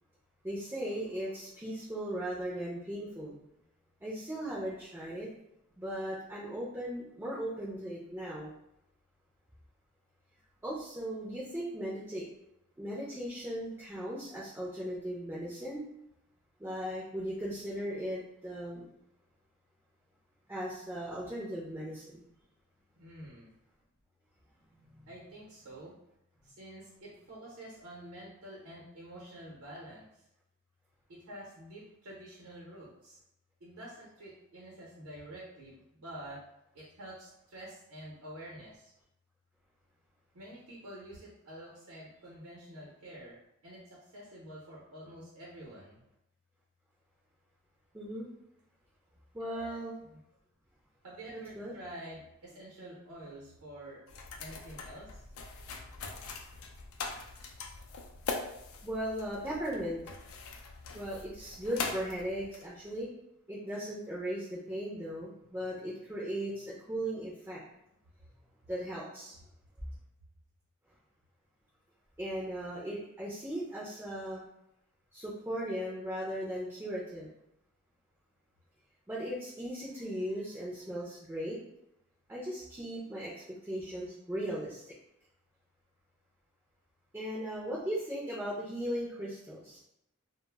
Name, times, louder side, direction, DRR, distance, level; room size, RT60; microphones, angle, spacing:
voice 1, 0.4-3.4 4.0-5.3 5.8-8.5 10.6-12.3 12.8-15.9 16.6-18.8 20.5-22.2 47.9-48.3 49.3-49.9 51.3-51.7 58.8-60.0 60.9-63.1 63.5-67.6 68.7-69.4 72.2-74.4 75.1-77.3 79.1-81.6 82.3-84.8 87.1-89.8, equal, 10° right, -6 dB, 0.4 m, -37 dB
voice 2, 22.9-23.5 25.1-26.0 26.4-30.1 31.1-33.2 33.6-36.4 36.7-38.9 40.3-43.4 43.6-46.0 49.4-49.8 51.0-54.0 54.4-55.2, right 1 dB, 80° right, -5 dB, 0.7 m, -48 dB
sound 1, 54.1-63.0, left 4 dB, 70° left, 0.3 m, -42 dB
2.0 x 2.0 x 3.2 m, 0.81 s
head